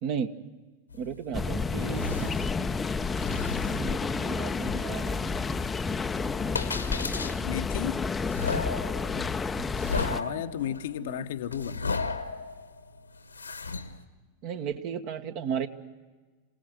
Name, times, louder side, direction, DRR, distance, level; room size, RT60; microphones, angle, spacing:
voice 1, 0.0-0.3 1.0-2.3 3.7-5.2 10.3-11.3 14.4-15.7, right 7 dB, 45° right, 1.3 m, -35 dB
sound 1, 0.9-14.0, left 4 dB, 80° left, 1.3 m, -36 dB
sound 2, 1.3-10.2, left 4 dB, 15° left, 0.6 m, -30 dB
voice 2, 7.4-8.0 10.2-12.1, left 11 dB, 55° left, 0.8 m, -34 dB
26.5 x 18.0 x 7.8 m
figure-of-eight pair, 90°, 0 cm